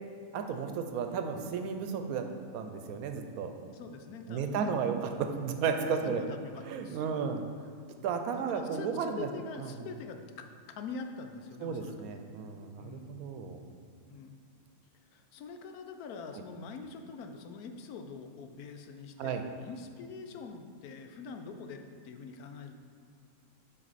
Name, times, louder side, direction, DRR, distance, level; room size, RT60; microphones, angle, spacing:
voice 1, 0.3-2.2 2.5-3.5 4.3-5.0 5.3-6.2 6.7-7.4 8.0-9.3 9.6-9.7 11.6-13.6 16.3-16.4 19.2-19.4, right 6 dB, 80° right, 6 dB, 1.1 m, -33 dB
voice 2, 3.7-5.2 5.8-7.3 8.3-12.2 12.8-13.3 14.1-14.4 15.1-22.8, left 5 dB, 85° left, 6 dB, 1.1 m, -44 dB
7.5 x 5.4 x 4.1 m, 2.1 s
omnidirectional pair, 1.5 m